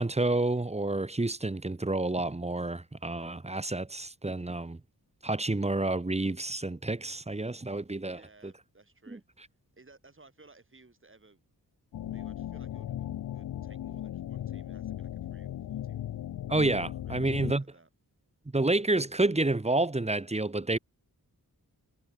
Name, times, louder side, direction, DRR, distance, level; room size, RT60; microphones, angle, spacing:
voice 1, 0.0-4.8 5.2-8.5 9.1-9.2 16.5-17.6 18.5-20.8, right 2 dB, 15° right, 1.3 m, -29 dB
voice 2, 8.0-9.2 9.7-11.4 12.0-16.1 17.0-17.9, right 3 dB, 30° right, 7.6 m, -59 dB
sound 1, 11.9-17.5, left 11 dB, 65° left, 0.5 m, -37 dB
cardioid pair, 75°, 38 cm